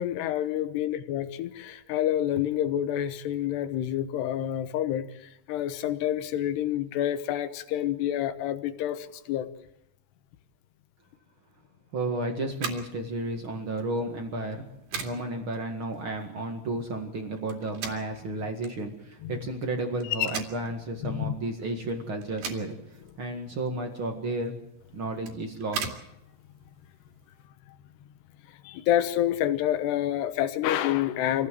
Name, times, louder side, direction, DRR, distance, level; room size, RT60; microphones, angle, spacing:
voice 1, 0.0-9.5 19.2-19.3 20.2-20.3 21.0-21.3 28.6-31.5, left 11 dB, 70° left, 10 dB, 2.8 m, -28 dB
voice 2, 11.9-14.7 15.0-24.6 24.9-25.9, right 2 dB, 75° right, 3 dB, 1.1 m, -32 dB
sound 1, 12.5-27.5, right 5 dB, 55° right, 3.7 m, -41 dB
25.5 x 16.5 x 7.6 m, 0.84 s
omnidirectional pair, 5.7 m